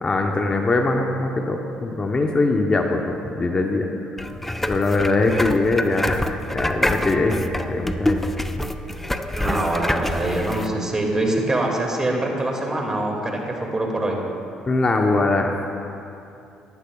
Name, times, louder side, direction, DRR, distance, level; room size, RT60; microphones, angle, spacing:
voice 1, 0.0-3.9 4.6-6.2 6.5-7.4 7.7-8.2 14.7-15.7, left 2 dB, 35° left, 3 dB, 0.8 m, -21 dB
sound 1, 4.2-10.7, left 1 dB, 10° left, 0.6 m, -26 dB
voice 2, 9.3-14.2, right 1 dB, 25° right, 0 dB, 2.1 m, -24 dB
15.0 x 11.5 x 2.3 m, 2.6 s
supercardioid pair, 70°, 3 cm